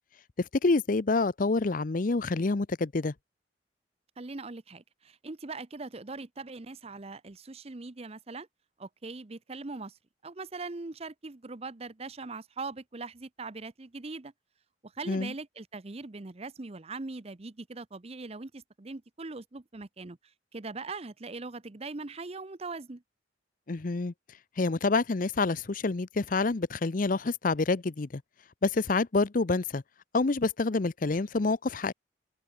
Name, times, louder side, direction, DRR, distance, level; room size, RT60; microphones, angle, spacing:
voice 1, 0.4-3.1 15.1-15.3 23.7-24.1 24.6-28.2 28.6-29.8 30.1-31.9, left 3 dB, 45° left, 0.6 m, -27 dB
voice 2, 4.2-8.5 8.8-10.0 10.2-14.3 14.8-20.2 20.5-23.0, right 3 dB, 35° right, 0.7 m, -41 dB
head